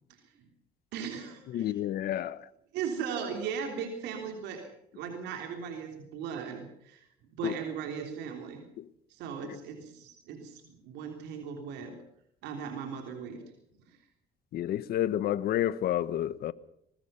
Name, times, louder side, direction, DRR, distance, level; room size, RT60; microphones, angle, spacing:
voice 1, 0.1-0.5 0.9-1.7 2.7-4.7 4.9-7.1 7.4-8.7 9.1-12.0 12.4-13.4 13.8-14.0, right 7 dB, 85° right, 3.6 m, -38 dB
voice 2, 1.5-2.5 7.4-7.5 8.8-8.9 9.5-9.6 14.5-16.5, left 12 dB, 65° left, 1.0 m, -30 dB
22.0 x 20.5 x 5.7 m
cardioid pair, 110°, 17 cm